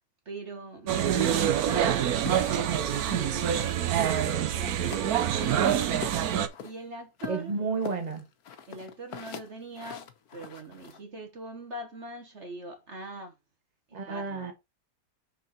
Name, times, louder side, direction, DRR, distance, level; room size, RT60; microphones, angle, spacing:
voice 1, 0.2-2.0 2.8-3.6 4.0-5.8 6.6-7.5 8.7-13.3 14.1-14.5, right 2 dB, 50° right, 1.5 m, -42 dB
sound 1, 0.9-6.5, right 10 dB, 80° right, 1.3 m, -26 dB
sound 2, 1.2-3.9 4.1-5.1 5.4-6.7 7.2-11.0, left 8 dB, 85° left, 1.5 m, -42 dB
voice 2, 7.3-8.2 13.9-14.5, right 4 dB, 30° right, 1.5 m, -31 dB
6.0 x 4.7 x 4.2 m
omnidirectional pair, 1.6 m